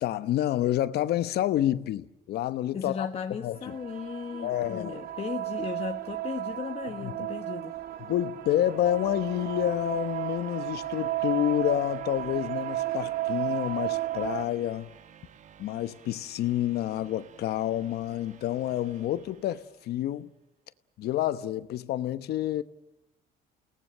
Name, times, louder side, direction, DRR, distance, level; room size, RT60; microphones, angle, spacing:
voice 1, 0.0-3.1 3.4-3.8 4.4-5.0 7.0-7.3 8.0-14.9 15.6-20.3 21.0-22.6, left 12 dB, 70° left, 1.1 m, -29 dB
voice 2, 2.7-7.7, left 6 dB, 35° left, 1.3 m, -36 dB
sound 1, 3.6-14.5, right 14 dB, 60° right, 1.1 m, -34 dB
sound 2, 7.2-20.2, right 8 dB, 45° right, 1.2 m, -52 dB
29.5 x 18.5 x 6.7 m
cardioid pair, 110°, 17 cm